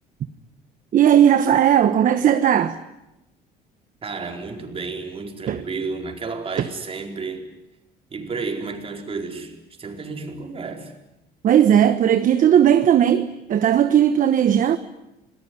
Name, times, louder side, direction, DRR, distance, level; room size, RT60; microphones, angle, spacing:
voice 1, 0.9-2.8 5.5-5.6 6.6-6.7 11.4-14.8, right 9 dB, 50° right, 1.1 m, -17 dB
voice 2, 4.0-7.5 8.1-10.9, right 4 dB, 35° right, 4.6 m, -31 dB
27.5 x 20.0 x 9.6 m
cardioid pair, 110°, 17 cm